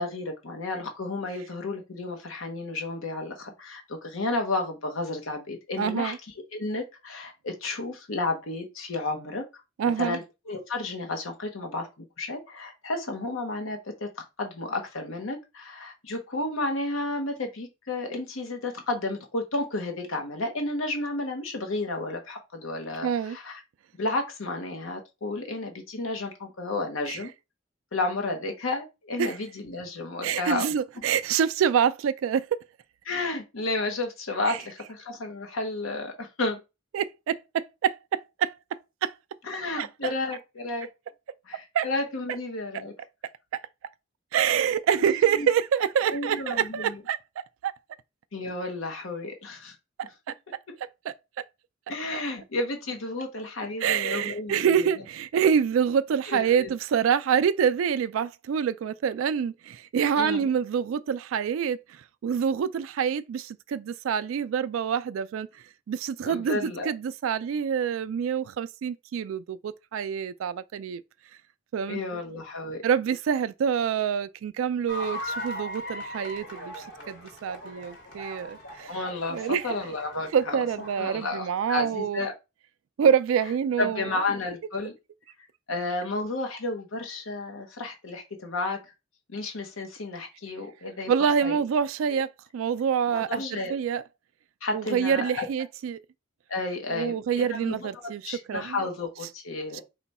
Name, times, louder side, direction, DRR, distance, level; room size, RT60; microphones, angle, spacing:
voice 1, 0.0-6.1 6.5-9.5 10.0-14.1 14.4-23.6 24.0-27.3 27.9-30.7 33.0-36.6 39.4-40.9 41.5-42.9 45.0-45.5 46.0-47.0 48.3-49.8 51.9-54.6 56.3-56.7 60.1-60.4 66.2-66.9 71.9-72.8 78.9-80.6 81.0-82.3 83.8-84.9 85.7-88.8 89.3-91.1 91.4-91.6 92.1-92.2 93.1-93.7 94.6-95.5 96.5-99.8, left 2 dB, 85° left, 0.9 m, -32 dB
voice 2, 5.8-6.2 9.8-10.2 23.0-23.4 27.1-27.2 29.2-29.4 30.2-32.5 34.5-34.6 36.9-38.6 39.0-39.1 39.8-40.1 41.7-41.9 43.5-43.6 44.3-47.2 47.6-47.7 50.0-50.3 51.1-51.2 53.8-71.0 71.7-72.0 72.8-79.0 79.3-79.7 80.3-82.3 83.0-84.0 91.1-94.0 94.7-96.0 96.9-98.8 99.7-99.8, right 7 dB, 80° right, 0.3 m, -26 dB
sound 1, 74.9-81.3, equal, 60° left, 1.3 m, -39 dB
4.8 x 2.3 x 4.1 m
head